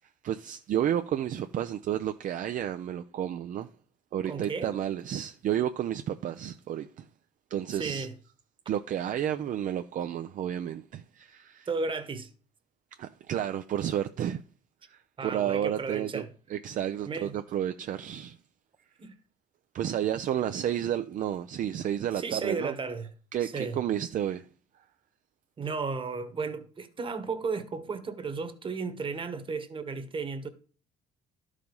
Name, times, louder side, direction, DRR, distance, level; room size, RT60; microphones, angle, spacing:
voice 1, 0.2-3.7 4.1-7.1 7.5-8.1 8.7-11.7 13.0-14.4 14.9-16.2 16.5-18.4 19.7-22.7 23.3-24.5, right 10 dB, 50° right, 0.5 m, -31 dB
voice 2, 4.2-4.7 7.7-8.1 11.7-12.3 15.2-16.3 17.1-17.3 19.0-19.1 22.1-23.1 23.4-23.8 25.6-30.5, right 4 dB, 30° right, 1.3 m, -34 dB
11.5 x 5.0 x 5.4 m
cardioid pair, 110°, 17 cm